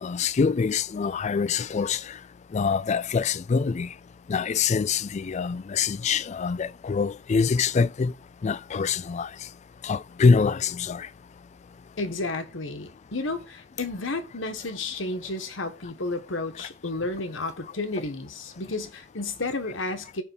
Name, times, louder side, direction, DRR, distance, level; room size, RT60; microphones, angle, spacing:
voice 1, 0.0-2.2 2.5-3.9 4.3-8.1 8.4-9.3 9.8-11.1, left 5 dB, 35° left, 0.3 m, -25 dB
voice 2, 12.0-20.2, left 2 dB, 70° left, 1.4 m, -32 dB
9.7 x 3.6 x 7.1 m
head